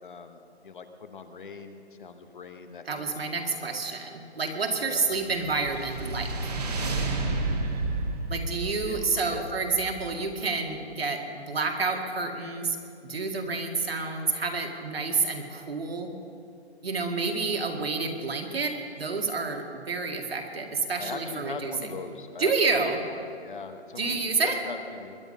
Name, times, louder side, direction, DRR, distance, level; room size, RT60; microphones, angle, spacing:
voice 1, 0.0-3.8 4.8-5.1 8.8-9.0 9.3-9.4 20.9-25.2, left 4 dB, 50° left, 8 dB, 1.1 m, -41 dB
voice 2, 2.9-6.5 8.3-12.8 13.0-16.1 16.8-21.9 22.4-23.0 24.0-24.6, right 4 dB, 60° right, 3 dB, 2.1 m, -29 dB
sound 1, 5.0-10.5, right 2 dB, 35° right, 1.7 m, -31 dB
21.5 x 11.0 x 5.4 m, 2.6 s
hypercardioid pair, 170°, 34 cm